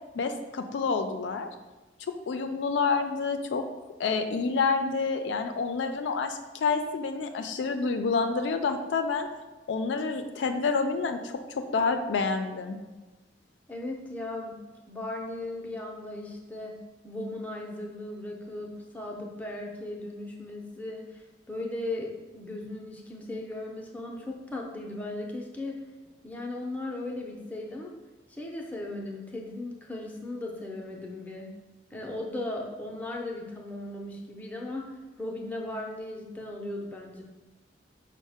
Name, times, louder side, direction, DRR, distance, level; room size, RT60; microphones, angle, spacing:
voice 1, 0.1-1.5 2.1-3.6 4.0-9.3 9.7-12.8, left 4 dB, 85° left, 7 dB, 0.4 m, -28 dB
voice 2, 13.7-14.6 14.9-25.8 26.2-27.9 28.3-31.5 31.9-37.2, left 2 dB, 10° left, -1 dB, 0.6 m, -37 dB
5.3 x 2.1 x 4.8 m, 1.2 s
head